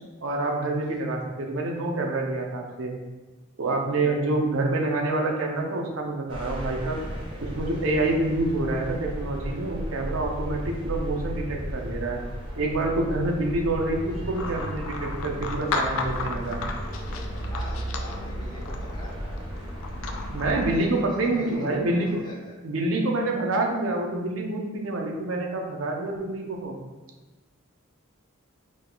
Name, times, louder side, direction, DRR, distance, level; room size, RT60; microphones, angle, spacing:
voice 1, 0.2-3.0 3.6-7.0 7.4-12.2 12.6-16.6 20.3-22.2 22.6-26.8, right 2 dB, 70° right, 1 dB, 0.7 m, -27 dB
sound 1, 6.3-20.8, equal, 25° right, 1.0 m, -34 dB
sound 2, 14.3-22.2, left 4 dB, 80° left, 0.4 m, -35 dB
voice 2, 17.5-19.1 20.8-21.7 22.2-22.6, left 1 dB, 25° left, -6 dB, 1.0 m, -43 dB
4.9 x 2.3 x 3.8 m, 1.2 s
head